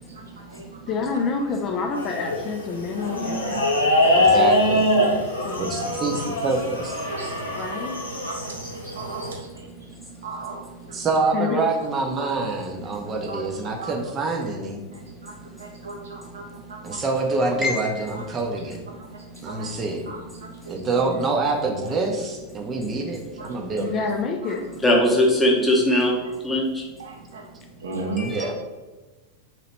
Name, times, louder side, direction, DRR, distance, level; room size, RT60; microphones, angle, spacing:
voice 1, 0.1-0.8 3.5-4.5 5.8-6.2 7.1-7.8 8.3-10.0 10.2-11.0 12.2-12.3 13.0-13.9 14.9-17.1 18.2-18.3 19.0-19.7 20.1-20.8 23.4-23.7 24.4-24.6 27.0-27.4 27.8-28.5, right 3 dB, 65° right, 1 dB, 0.7 m, -37 dB
voice 2, 0.9-3.6 5.4-6.2 7.6-8.0 11.3-11.7 21.0-21.3 23.8-24.7, left 5 dB, 30° left, 4 dB, 0.4 m, -28 dB
sound 1, 1.9-9.3, left 1 dB, 80° left, 0.7 m, -23 dB
voice 3, 4.1-5.0 5.6-7.0 10.9-14.8 16.8-18.8 19.4-20.1 20.7-24.0 28.3-28.5, right 3 dB, 25° right, 2 dB, 0.6 m, -26 dB
voice 4, 17.6-18.0 24.8-26.1 26.4-26.6 28.2-28.5, left 1 dB, 10° left, -2 dB, 0.8 m, -20 dB
3.0 x 2.9 x 4.2 m, 1.2 s
figure-of-eight pair, 90°, 0 cm